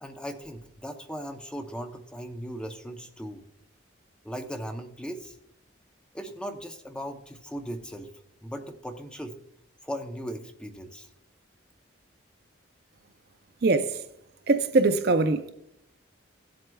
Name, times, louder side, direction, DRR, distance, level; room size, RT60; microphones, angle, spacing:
voice 1, 0.0-3.4 4.2-5.4 6.1-8.1 8.4-9.4 9.8-11.1, equal, 5° left, 0.7 m, -38 dB
voice 2, 13.6-14.0 14.5-15.5, right 3 dB, 50° right, 0.5 m, -22 dB
17.0 x 7.7 x 2.3 m
head